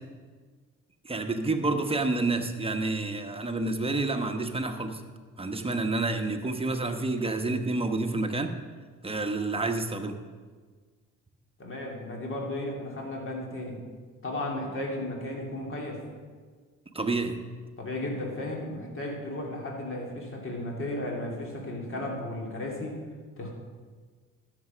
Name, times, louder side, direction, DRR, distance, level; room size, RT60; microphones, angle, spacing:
voice 1, 1.0-5.0 5.4-8.5 9.0-10.2 16.9-17.4, right 2 dB, 20° right, 5 dB, 1.1 m, -29 dB
voice 2, 11.6-13.8 14.2-16.0 17.8-23.0 23.4-23.5, left 1 dB, 45° left, -1 dB, 2.9 m, -34 dB
13.0 x 6.8 x 6.2 m, 1.5 s
cardioid pair, 90°, 30 cm